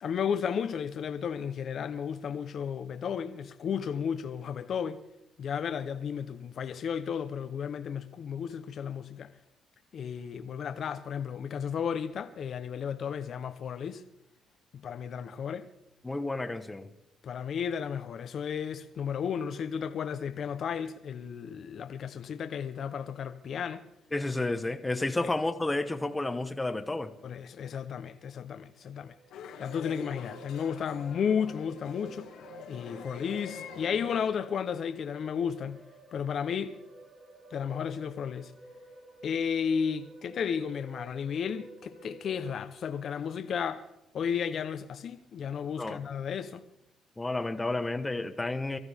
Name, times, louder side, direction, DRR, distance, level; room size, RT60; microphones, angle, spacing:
voice 1, 0.0-5.0 5.4-9.3 9.9-14.0 14.7-15.7 17.2-23.8 25.2-25.3 27.2-29.1 29.6-32.3 32.7-35.8 36.1-36.8 37.5-38.5 39.2-43.8 44.1-46.6, left 7 dB, 55° left, 0.8 m, -33 dB
voice 2, 16.0-16.9 24.1-27.1 45.8-46.0 47.2-48.8, left 2 dB, 15° left, 1.0 m, -31 dB
sound 1, 28.9-42.5, right 2 dB, 40° right, 3.5 m, -51 dB
sound 2, 29.3-34.3, left 7 dB, 90° left, 1.5 m, -46 dB
23.5 x 14.0 x 3.5 m
cardioid pair, 110°, 0 cm